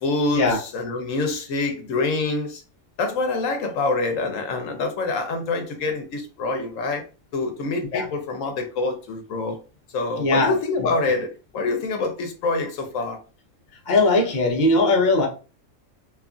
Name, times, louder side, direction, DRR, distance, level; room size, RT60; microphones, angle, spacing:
voice 1, 0.0-2.6 3.0-7.0 7.3-9.6 9.9-13.2, left 3 dB, 80° left, 1.0 m, -26 dB
voice 2, 10.2-10.5 10.8-11.1 13.9-15.3, left 2 dB, 40° left, 0.8 m, -20 dB
2.8 x 2.4 x 2.4 m
omnidirectional pair, 1.4 m